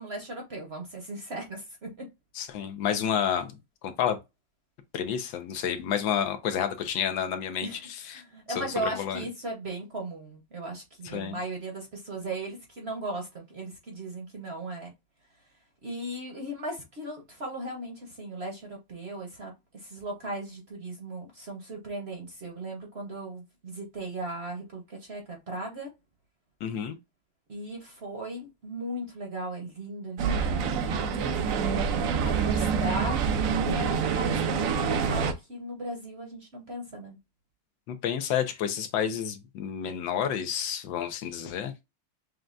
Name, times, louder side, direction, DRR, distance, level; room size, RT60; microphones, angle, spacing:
voice 1, 0.0-2.1 7.6-7.8 8.1-14.9 15.8-19.5 19.8-25.9 27.5-31.4 32.1-37.2, right 1 dB, 45° right, 0.9 m, -37 dB
voice 2, 2.3-3.5 3.8-4.2 4.9-8.2 8.5-9.2 11.1-11.4 26.6-27.0 37.9-41.7, left 9 dB, 85° left, 1.4 m, -30 dB
Tunis Medina Handwerker und Stimmen, 30.2-35.3, right 6 dB, 80° right, 0.7 m, -26 dB
6.4 x 2.3 x 2.4 m
omnidirectional pair, 2.0 m